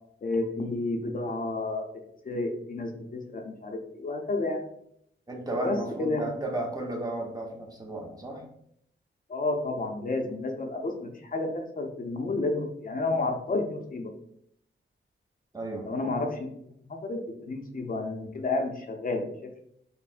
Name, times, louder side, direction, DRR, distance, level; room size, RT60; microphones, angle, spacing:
voice 1, 0.2-1.9 2.2-4.6 5.6-6.3 9.3-14.1 15.8-16.8 17.0-19.6, left 2 dB, 45° left, 3 dB, 0.5 m, -31 dB
voice 2, 5.3-8.4 15.5-15.9, right 2 dB, 20° right, 0 dB, 0.6 m, -33 dB
5.5 x 2.0 x 2.5 m, 0.71 s
wide cardioid pair, 115°, 21 cm